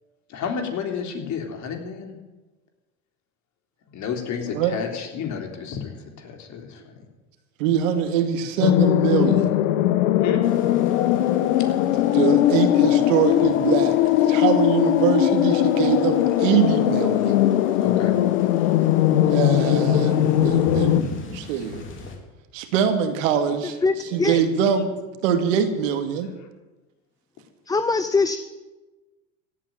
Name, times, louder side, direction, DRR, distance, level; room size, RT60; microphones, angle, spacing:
voice 1, 0.3-2.2 3.9-7.1 10.2-10.4 17.8-18.2 20.1-20.2 24.0-24.3, left 6 dB, 45° left, 3 dB, 3.6 m, -31 dB
voice 2, 7.6-9.6 12.1-17.4 19.3-21.1 21.3-21.8 22.5-23.8 24.1-24.9 25.2-26.3, right 8 dB, 75° right, 7 dB, 2.4 m, -23 dB
sound 1, 8.6-21.0, left 13 dB, 80° left, 1.1 m, -20 dB
sound 2, 10.4-22.2, left 3 dB, 30° left, 4.0 m, -42 dB
voice 3, 23.8-24.4 27.7-28.4, left 4 dB, 10° left, 11 dB, 0.6 m, -22 dB
16.0 x 9.2 x 9.2 m, 1.2 s
supercardioid pair, 105°, 38 cm